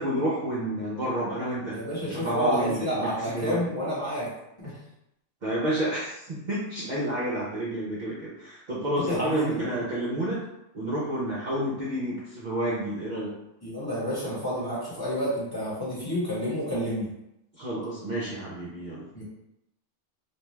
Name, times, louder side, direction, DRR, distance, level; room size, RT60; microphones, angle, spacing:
voice 1, 0.0-1.8 2.1-3.6 5.4-10.4 10.7-13.3 17.6-19.1, right 1 dB, 50° right, -8 dB, 0.6 m, -30 dB
voice 2, 1.7-4.3 4.6-4.8 9.1-9.7 13.6-17.1 19.1-19.2, equal, 20° left, -9 dB, 1.0 m, -29 dB
2.6 x 2.2 x 3.1 m, 0.85 s
omnidirectional pair, 1.2 m